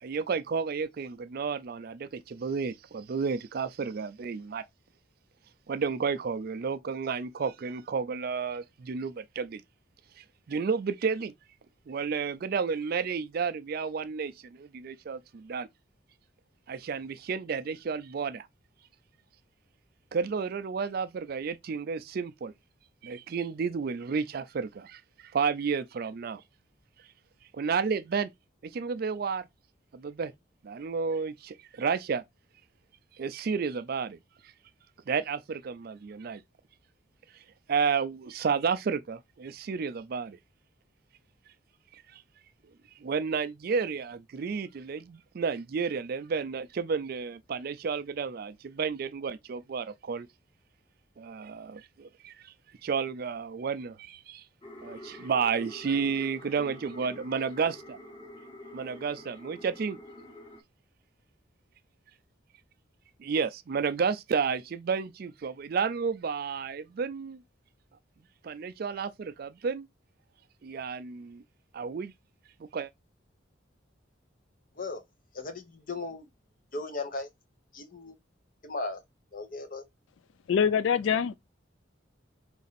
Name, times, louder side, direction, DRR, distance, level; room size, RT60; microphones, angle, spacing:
voice 1, 0.0-4.6 5.7-9.6 10.2-11.3 11.9-15.7 16.7-18.5 20.1-22.5 23.0-26.4 27.5-28.3 28.6-29.5 29.9-30.3 30.6-32.2 33.2-34.2 35.1-36.4 37.7-40.4 41.9-42.2 43.0-50.3 51.2-52.5 52.8-54.4 54.8-58.0 58.7-60.0 63.2-67.4 68.4-69.9 70.6-71.4 71.7-72.1 72.6-72.9, right 5 dB, 50° right, 0.4 m, -31 dB
sound 1, 54.6-60.6, left 1 dB, 25° left, 1.2 m, -47 dB
voice 2, 75.3-76.3 76.7-77.3 77.7-78.1 78.6-79.0 79.3-79.8, left 3 dB, 45° left, 0.8 m, -36 dB
voice 3, 80.5-81.4, left 7 dB, 70° left, 0.3 m, -24 dB
4.0 x 2.6 x 4.0 m
head